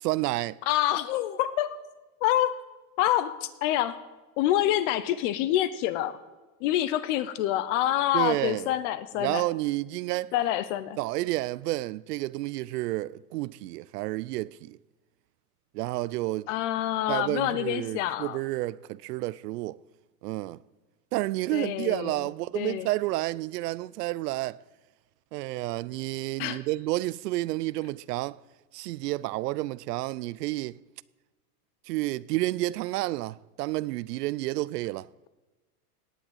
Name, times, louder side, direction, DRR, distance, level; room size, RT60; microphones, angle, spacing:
voice 1, 0.0-0.6 8.1-8.7 9.2-10.3 11.0-14.8 15.7-16.5 17.1-19.8 20.2-20.6 21.1-24.6 25.3-28.4 28.7-30.8 31.9-35.1, right 18 dB, 85° right, 0.5 m, -30 dB
voice 2, 0.7-1.8 2.2-2.6 3.0-4.0 4.4-6.2 6.6-9.4 10.3-11.0 16.5-18.4 21.5-22.2 22.5-22.9 26.4-26.6, left 13 dB, 50° left, 0.8 m, -27 dB
18.0 x 6.3 x 8.7 m
supercardioid pair, 145°, 46 cm